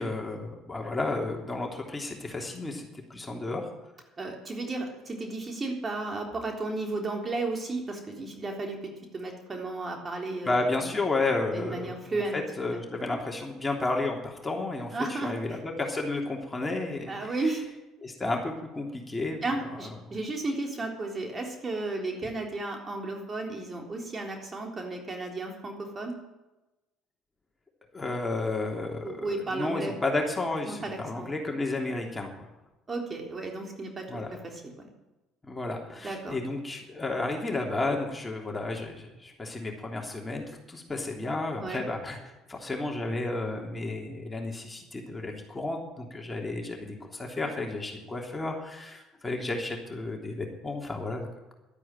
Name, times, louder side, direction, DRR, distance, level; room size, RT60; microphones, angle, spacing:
voice 1, 0.0-3.7 10.5-17.3 18.0-19.4 20.1-20.2 27.9-32.5 34.1-34.3 35.4-51.5, left 2 dB, 20° left, 0 dB, 3.2 m, -32 dB
voice 2, 4.2-10.9 11.5-12.4 12.7-12.8 14.9-15.6 17.1-17.6 19.4-26.1 29.0-29.9 30.7-31.3 32.9-34.9 36.0-36.4 41.6-41.8, right 2 dB, 30° right, 1 dB, 3.7 m, -34 dB
12.0 x 9.7 x 9.0 m, 1.0 s
hypercardioid pair, 65°, 0 cm